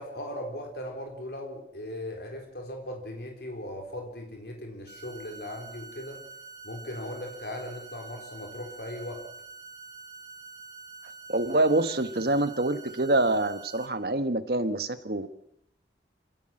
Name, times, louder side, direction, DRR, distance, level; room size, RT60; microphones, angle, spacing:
voice 1, 0.0-6.2 6.6-9.2, left 1 dB, 65° left, 2 dB, 4.1 m, -38 dB
sound 1, 4.9-13.9, right 4 dB, 20° right, 3.1 m, -46 dB
voice 2, 11.3-15.3, right 2 dB, 60° right, 10 dB, 1.4 m, -26 dB
26.0 x 15.5 x 7.8 m, 0.75 s
head